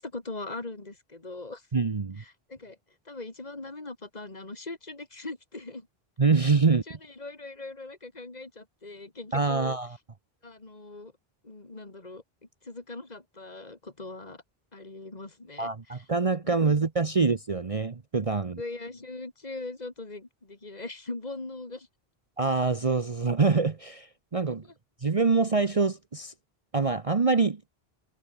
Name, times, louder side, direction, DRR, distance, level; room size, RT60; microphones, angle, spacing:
voice 1, 0.0-1.7 2.2-2.8 3.0-5.9 6.7-9.8 10.4-11.1 11.4-12.2 12.6-14.4 14.7-16.0 16.4-16.8 18.6-21.9 24.5-24.7, left 2 dB, 40° left, 3.0 m, -40 dB
voice 2, 1.7-2.2 6.2-6.8 9.3-10.0 15.6-18.6 22.4-24.6 25.0-26.3 26.7-27.6, right 4 dB, 35° right, 1.0 m, -25 dB
omnidirectional pair, 1.1 m